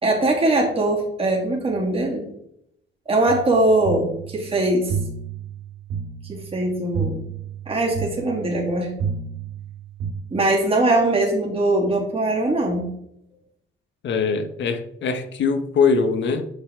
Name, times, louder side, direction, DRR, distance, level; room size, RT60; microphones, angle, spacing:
voice 1, 0.0-2.3 3.1-4.9 6.3-7.2 7.7-8.9 10.3-12.9, right 2 dB, 30° right, 2.8 m, -21 dB
sound 1, 3.3-10.1, right 6 dB, 90° right, 2.6 m, -31 dB
voice 2, 14.0-16.5, left 5 dB, 65° left, 1.1 m, -22 dB
8.1 x 5.4 x 3.8 m
cardioid pair, 90°, 20 cm